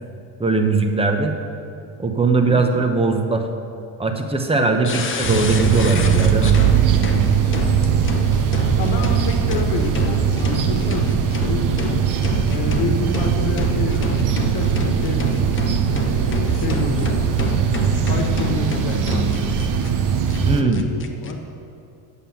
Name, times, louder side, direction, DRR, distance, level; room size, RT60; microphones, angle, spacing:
voice 1, 0.4-1.4 2.0-3.5 4.0-6.6 20.5-20.8, right 3 dB, 15° right, 4 dB, 0.9 m, -20 dB
voice 2, 4.5-4.9 8.8-12.0 12.5-15.3 16.1-17.2 18.1-19.5 20.5-21.4, left 3 dB, 70° left, 3 dB, 1.5 m, -28 dB
sound 1, 4.8-19.9 20.3-20.4 20.7-21.3, left 4 dB, 30° left, 0.8 m, -29 dB
sound 2, 5.2-20.6, right 7 dB, 50° right, 0.9 m, -20 dB
8.3 x 7.6 x 7.0 m, 2.6 s
cardioid pair, 115°, 42 cm